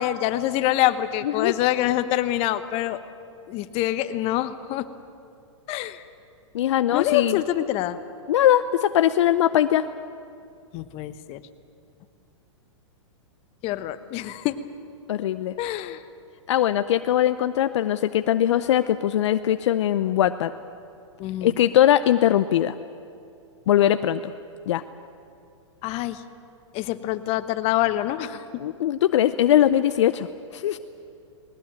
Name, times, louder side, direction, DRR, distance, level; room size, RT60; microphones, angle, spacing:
voice 1, 0.0-3.0 3.5-4.9 5.7-6.0 6.9-8.0 10.7-11.4 13.6-14.6 15.6-16.0 21.2-21.5 25.8-26.2 26.7-28.4, left 14 dB, 40° left, 11 dB, 1.2 m, -25 dB
voice 2, 1.2-1.6 6.5-7.4 8.3-9.9 15.1-15.5 16.5-20.5 21.4-22.8 23.7-24.3 24.7-24.8 28.6-30.3 30.5-30.8, left 11 dB, 65° left, 12 dB, 0.7 m, -21 dB
20.0 x 19.5 x 8.9 m, 2.5 s
hypercardioid pair, 115°, 16 cm